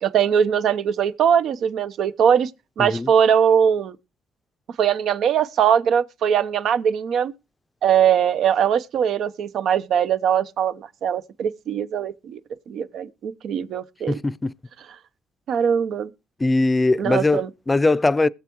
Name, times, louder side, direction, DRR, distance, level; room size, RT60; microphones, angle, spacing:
voice 1, 0.0-2.5 2.8-4.0 4.8-7.3 7.8-12.4 12.7-14.2 15.5-16.1 17.0-17.5, right 8 dB, 75° right, 0.9 m, -21 dB
voice 2, 14.1-14.5 16.4-18.3, left 2 dB, 20° left, 0.5 m, -20 dB
21.5 x 7.4 x 3.1 m
cardioid pair, 90°, 0 cm